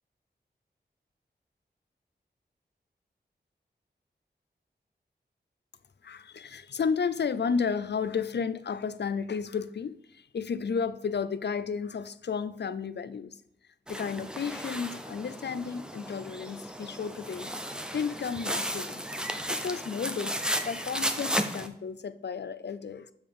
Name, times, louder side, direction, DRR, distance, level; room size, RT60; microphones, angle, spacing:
voice 1, 6.0-13.4 13.9-17.5 17.8-19.0 19.5-20.4 20.7-23.1, left 6 dB, 70° left, 0.5 m, -32 dB
sound 1, 13.9-21.7, equal, 5° right, 0.8 m, -34 dB
8.7 x 5.2 x 3.5 m
wide cardioid pair, 75°, 18 cm